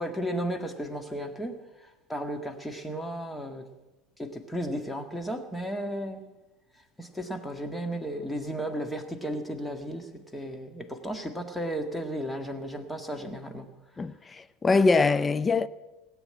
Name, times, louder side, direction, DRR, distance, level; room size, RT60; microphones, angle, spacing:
voice 1, 0.0-3.7 4.2-6.2 7.0-13.7, equal, 5° left, 1.8 m, -34 dB
voice 2, 14.0-15.7, left 4 dB, 20° left, 0.6 m, -23 dB
18.0 x 8.4 x 8.8 m
hypercardioid pair, 80°, 0 cm